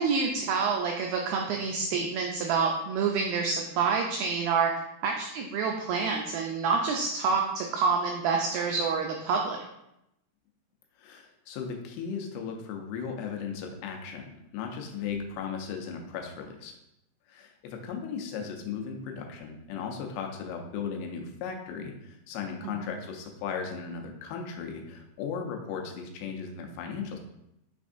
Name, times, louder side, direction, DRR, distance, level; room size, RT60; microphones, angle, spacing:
voice 1, 0.0-4.7 5.0-9.6, right 5 dB, 90° right, 1 dB, 2.0 m, -27 dB
voice 2, 11.0-16.8 17.3-27.2, left 6 dB, 90° left, 3 dB, 2.8 m, -36 dB
6.2 x 3.4 x 2.5 m, 0.84 s
omnidirectional pair, 4.6 m